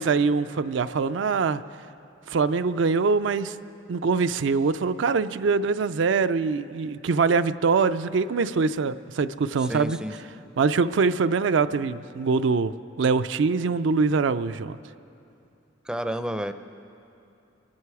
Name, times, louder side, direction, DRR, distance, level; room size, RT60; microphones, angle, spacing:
voice 1, 0.0-1.6 2.3-3.6 3.9-10.0 10.6-14.8, right 4 dB, 80° right, 11 dB, 0.4 m, -23 dB
voice 2, 9.6-10.1 15.9-16.5, right 1 dB, 5° right, 8 dB, 0.4 m, -30 dB
26.5 x 11.5 x 4.8 m, 2.7 s
head